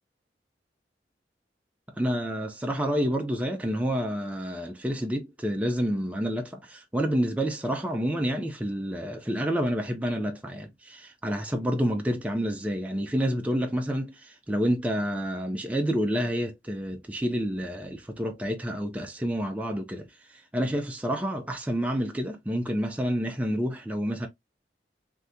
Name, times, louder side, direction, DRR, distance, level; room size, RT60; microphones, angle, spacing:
voice 1, 2.0-24.3, equal, 10° right, 0.4 m, -29 dB
3.5 x 2.6 x 2.6 m
head